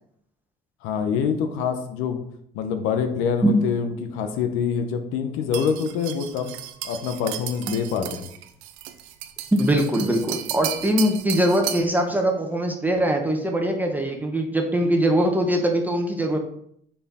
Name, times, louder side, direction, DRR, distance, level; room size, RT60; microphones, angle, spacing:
voice 1, 0.8-2.2 2.5-6.5 6.8-8.3, left 6 dB, 85° left, 7 dB, 0.7 m, -25 dB
sound 1, 5.5-12.0, right 12 dB, 90° right, 0.6 m, -34 dB
voice 2, 9.5-16.4, right 1 dB, 10° right, 2 dB, 0.9 m, -22 dB
5.6 x 4.3 x 4.2 m, 0.69 s
cardioid pair, 95°, 21 cm